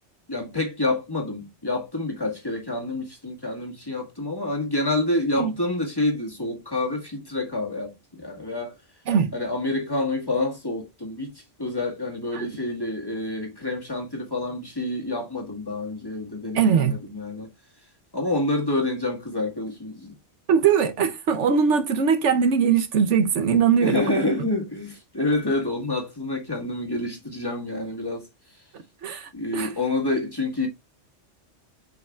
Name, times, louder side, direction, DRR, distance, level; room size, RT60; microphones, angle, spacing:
voice 1, 0.3-8.8 9.3-11.3 11.6-17.5 18.1-20.1 23.8-28.3 29.3-30.7, left 2 dB, 20° left, 1.8 m, -28 dB
voice 2, 16.5-16.9 20.5-24.0 24.4-24.5 29.0-29.7, right 7 dB, 70° right, 1.1 m, -21 dB
7.4 x 5.6 x 2.3 m
omnidirectional pair, 1.3 m